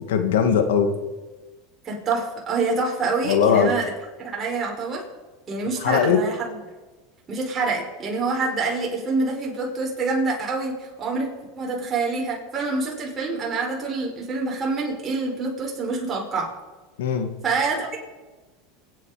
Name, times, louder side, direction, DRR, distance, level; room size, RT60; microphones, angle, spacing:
voice 1, 0.1-0.9 3.2-3.7 5.8-6.2 17.0-17.3, left 7 dB, 85° left, 7 dB, 2.2 m, -20 dB
voice 2, 1.8-3.9 4.2-5.0 5.5-6.6 7.3-11.3 11.6-16.5 17.4-18.0, right 3 dB, 30° right, -2 dB, 5.3 m, -26 dB
27.5 x 9.3 x 5.2 m, 1.2 s
supercardioid pair, 105°, 0 cm